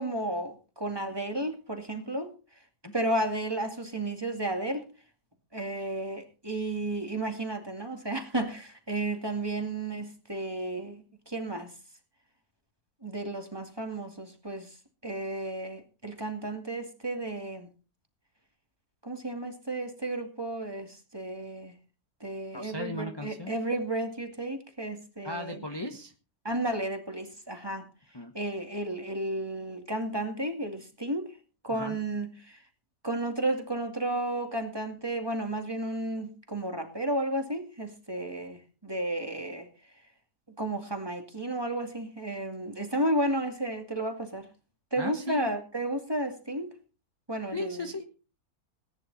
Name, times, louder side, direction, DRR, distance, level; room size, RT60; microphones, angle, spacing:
voice 1, 0.0-2.3 2.9-4.9 5.5-11.7 13.0-14.7 15.0-17.7 19.0-21.8 22.2-25.6 26.4-27.9 28.3-31.3 31.6-32.6 33.0-39.7 40.6-44.5 44.9-46.7 47.3-47.9, right 1 dB, 15° right, 2.3 m, -33 dB
voice 2, 22.5-23.5 25.2-26.1 28.1-28.3 31.7-31.9 45.0-45.5 47.5-48.1, left 1 dB, 20° left, 1.2 m, -36 dB
18.5 x 10.0 x 4.2 m
omnidirectional pair, 1.6 m